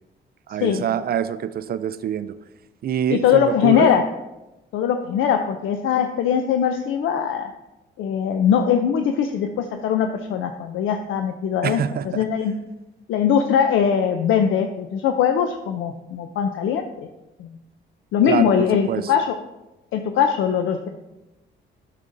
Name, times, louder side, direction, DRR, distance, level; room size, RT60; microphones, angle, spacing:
voice 1, 0.5-2.3 2.8-3.9 11.6-12.2 18.3-19.1, right 9 dB, 50° right, 13 dB, 0.4 m, -25 dB
voice 2, 3.1-4.0 4.7-7.5 8.0-12.5 13.1-16.9 17.4-17.5 18.1-19.4 19.9-20.9, left 8 dB, 80° left, 6 dB, 0.5 m, -21 dB
9.3 x 6.6 x 2.6 m, 0.99 s
cardioid pair, 90°, 20 cm